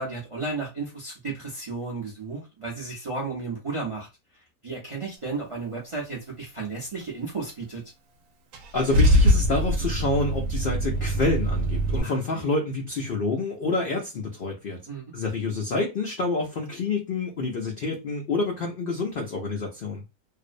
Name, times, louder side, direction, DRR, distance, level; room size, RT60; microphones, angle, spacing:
voice 1, 0.0-4.1 4.6-7.8 12.0-12.2 14.9-15.1, right 3 dB, 45° right, 0.4 m, -33 dB
Car / Engine starting / Idling, 8.5-12.0, equal, 70° right, 0.9 m, -22 dB
voice 2, 8.7-14.8 15.1-20.0, left 3 dB, 90° left, 0.4 m, -28 dB
2.5 x 2.0 x 2.4 m
omnidirectional pair, 1.6 m